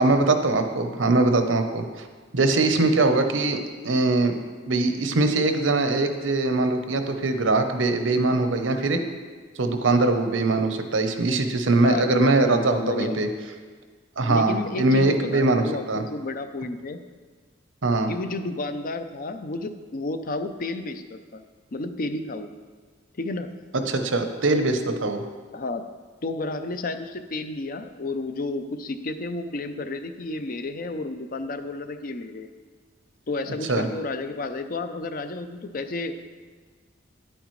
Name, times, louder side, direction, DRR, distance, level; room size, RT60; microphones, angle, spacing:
voice 1, 0.0-2.1 2.3-3.6 3.8-4.3 4.7-9.0 9.6-13.3 14.2-16.0 17.8-18.1 23.9-25.2 33.7-33.8, right 2 dB, 85° right, 7 dB, 0.8 m, -22 dB
voice 2, 11.8-13.5 14.3-17.0 18.1-21.4 21.7-22.5 23.2-23.5 25.5-25.8 26.2-32.5 33.3-36.1, left 2 dB, 45° left, 9 dB, 0.5 m, -31 dB
10.0 x 8.7 x 3.2 m, 1.5 s
head